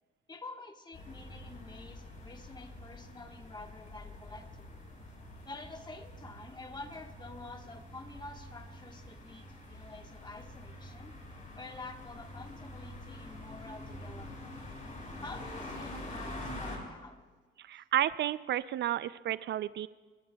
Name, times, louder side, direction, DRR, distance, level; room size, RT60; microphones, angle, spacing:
voice 1, 0.3-4.8 5.4-11.2 11.5-14.6 15.2-17.2, left 2 dB, 20° left, 5 dB, 1.4 m, -48 dB
sound 1, 0.9-16.8, left 1 dB, 40° left, 4.9 m, -46 dB
voice 2, 17.6-19.9, right 12 dB, 60° right, 16 dB, 0.4 m, -32 dB
29.5 x 14.5 x 2.3 m, 1.4 s
cardioid pair, 90°, 20 cm